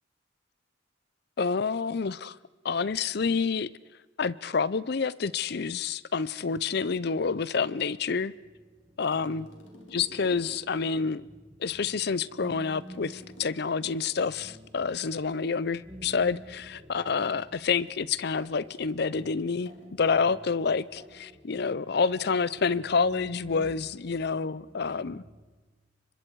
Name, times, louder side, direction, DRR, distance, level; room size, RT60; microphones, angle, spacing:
voice 1, 1.4-2.4 2.6-3.7 4.2-8.3 9.0-9.4 9.9-11.2 11.6-19.7 20.0-25.2, left 5 dB, 55° left, 0.6 m, -28 dB
sound 1, 8.3-25.4, equal, 20° right, 2.5 m, -51 dB
sound 2, 9.0-10.8 12.3-14.3 16.1-21.2 22.6-22.9 23.9-24.3, left 1 dB, 90° left, 3.9 m, -54 dB
29.0 x 24.5 x 4.7 m
head